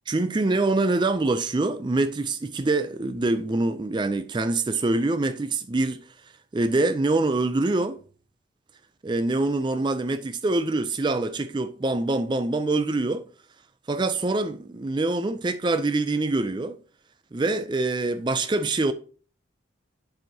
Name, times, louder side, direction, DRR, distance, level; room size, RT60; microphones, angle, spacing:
voice 1, 0.1-6.0 6.5-8.0 9.0-13.2 13.9-16.8 17.3-18.9, right 2 dB, 25° right, 0.4 m, -25 dB
10.5 x 4.5 x 2.8 m
head